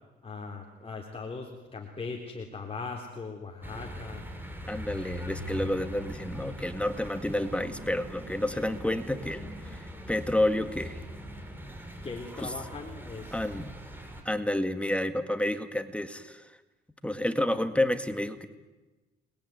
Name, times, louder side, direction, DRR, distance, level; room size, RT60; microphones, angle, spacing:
voice 1, 0.2-4.2 12.0-13.4, left 4 dB, 30° left, 2 dB, 3.7 m, -39 dB
sound 1, 3.6-14.2, equal, 10° right, 6.0 m, -41 dB
voice 2, 4.7-11.0 12.4-12.5 13.3-13.7 14.3-16.5 17.0-18.5, left 1 dB, 5° left, 9 dB, 1.9 m, -30 dB
30.0 x 21.0 x 9.4 m, 1.2 s
cardioid pair, 90°, 20 cm